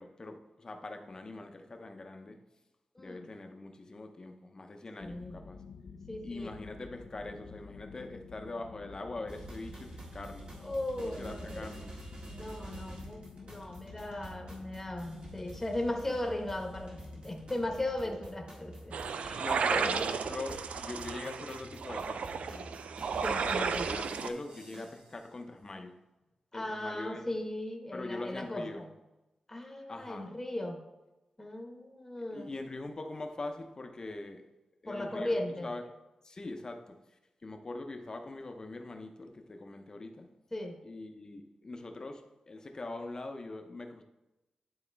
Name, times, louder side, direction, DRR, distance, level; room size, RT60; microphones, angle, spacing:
voice 1, 0.0-2.4 3.0-5.6 6.2-10.5 11.0-11.9 19.4-22.7 23.4-25.9 26.5-27.3 27.9-28.9 29.9-30.3 32.3-34.4 34.8-35.4 35.6-35.8 36.2-37.0 37.4-40.3 40.8-44.0, left 2 dB, 35° left, 5 dB, 0.7 m, -42 dB
voice 2, 2.9-3.3 5.0-5.4 6.1-6.5 10.6-11.7 12.2-20.0 23.2-23.9 26.5-28.9 29.5-30.8 31.4-32.5 34.9-35.7 40.5-40.8, left 1 dB, 15° left, 2 dB, 1.0 m, -37 dB
sound 1, 5.0-18.0, left 5 dB, 85° left, 0.5 m, -51 dB
sound 2, 9.3-25.2, right 1 dB, 60° right, 1.7 m, -48 dB
sound 3, 18.9-24.3, right 6 dB, 85° right, 0.3 m, -33 dB
11.0 x 4.1 x 3.4 m, 1.0 s
wide cardioid pair, 140°, 2 cm